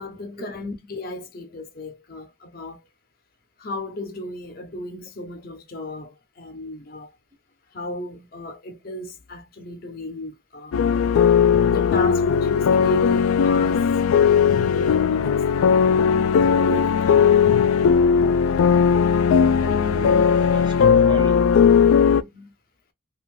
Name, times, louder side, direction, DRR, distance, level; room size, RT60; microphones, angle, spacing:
voice 1, 0.0-2.8 3.6-7.1 7.7-10.8 11.6-13.9 14.1-15.7 16.5-17.5 22.2-22.5, left 2 dB, 45° left, 0.6 m, -35 dB
sound 1, 10.7-22.2, left 7 dB, 85° left, 0.3 m, -18 dB
voice 2, 19.6-21.5, right 2 dB, 20° right, 0.5 m, -35 dB
2.5 x 2.3 x 3.1 m
head